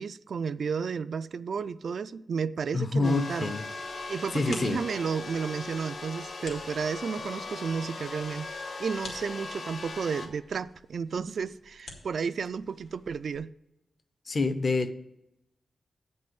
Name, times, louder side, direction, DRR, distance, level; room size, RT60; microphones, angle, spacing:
voice 1, 0.0-3.5 4.1-8.5 8.8-13.5, right 6 dB, 65° right, 0.3 m, -32 dB
voice 2, 2.7-3.6 4.3-4.8 14.3-14.9, left 3 dB, 40° left, 0.6 m, -27 dB
sound 1, 3.0-10.3, left 3 dB, 60° left, 1.2 m, -39 dB
sound 2, 3.2-13.4, left 3 dB, 80° left, 1.9 m, -51 dB
8.4 x 5.4 x 7.6 m
wide cardioid pair, 160°, 0 cm